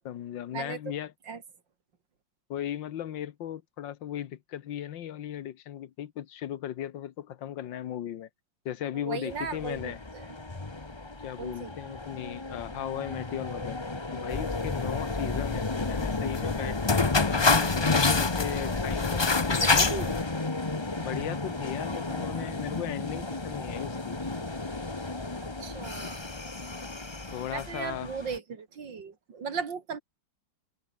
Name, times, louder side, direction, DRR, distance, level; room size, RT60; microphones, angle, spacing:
voice 1, 0.1-1.1 2.5-8.3 8.7-10.0 11.2-13.8 14.1-19.6 21.0-24.2 27.3-28.1, left 11 dB, 85° left, 1.8 m, -37 dB
voice 2, 9.0-10.2 11.4-11.7 19.6-20.2 25.6-26.2 27.5-30.0, right 6 dB, 80° right, 3.0 m, -36 dB
sound 1, 9.3-28.4, left 2 dB, 15° left, 1.3 m, -35 dB
sound 2, 14.3-20.2, left 4 dB, 40° left, 0.3 m, -26 dB
omnidirectional pair, 1.9 m